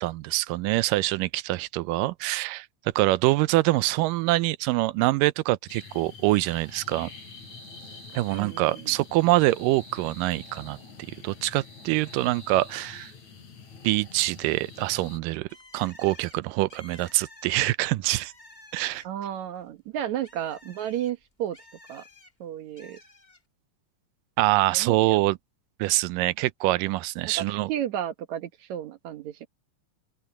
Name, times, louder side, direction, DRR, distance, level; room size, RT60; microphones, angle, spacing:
voice 1, 0.0-2.7 3.0-7.1 8.1-10.8 11.1-13.1 13.8-15.5 15.7-18.3 18.7-19.0 24.4-25.4 25.8-27.7, right 18 dB, 90° right, 2.3 m, -25 dB
sound 1, 5.7-15.2, left 3 dB, 60° left, 4.4 m, -46 dB
voice 2, 8.3-8.9 19.0-21.6 21.9-22.0 22.4-23.0 24.7-25.2 27.2-29.5, right 10 dB, 65° right, 2.4 m, -33 dB
Bird, 15.5-19.3 19.7-22.3 22.8-23.4, left 2 dB, 15° left, 1.7 m, -52 dB
open air
omnidirectional pair, 3.8 m